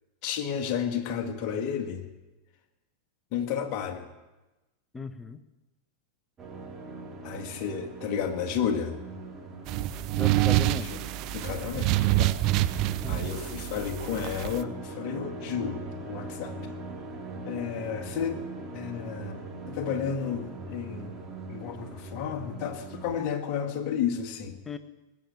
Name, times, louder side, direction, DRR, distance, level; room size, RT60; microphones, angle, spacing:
voice 1, 0.2-2.1 3.3-4.1 7.2-9.0 10.9-11.0 11.3-12.4 13.1-16.6 17.5-18.4 18.7-21.2 21.5-24.6, left 7 dB, 40° left, 6 dB, 2.0 m, -32 dB
voice 2, 4.9-5.5 10.2-10.9 13.0-13.3 24.6-24.8, left 4 dB, 15° left, 11 dB, 1.0 m, -37 dB
sound 1, 6.4-23.2, right 2 dB, 25° right, 2.9 m, -41 dB
sound 2, 9.7-14.6, right 17 dB, 40° right, 0.6 m, -27 dB
20.0 x 8.7 x 8.0 m, 1.1 s
figure-of-eight pair, 90°, 0 cm